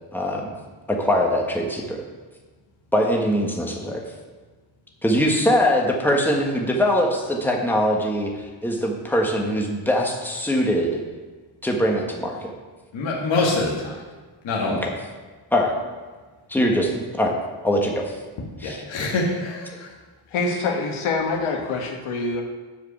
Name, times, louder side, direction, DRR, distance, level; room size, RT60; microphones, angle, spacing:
voice 1, 0.1-0.5 0.9-2.0 2.9-4.0 5.0-11.0 11.6-12.5 14.7-14.9 15.5-15.8 16.5-17.3 17.6-18.1 18.6-18.8, equal, 5° left, 0 dB, 1.3 m, -22 dB
voice 2, 12.9-14.0 14.4-14.8 18.6-19.9, left 2 dB, 65° left, -3 dB, 1.6 m, -25 dB
voice 3, 20.3-22.4, left 3 dB, 85° left, 2 dB, 1.5 m, -25 dB
8.0 x 4.9 x 7.0 m, 1.4 s
cardioid pair, 110°, 48 cm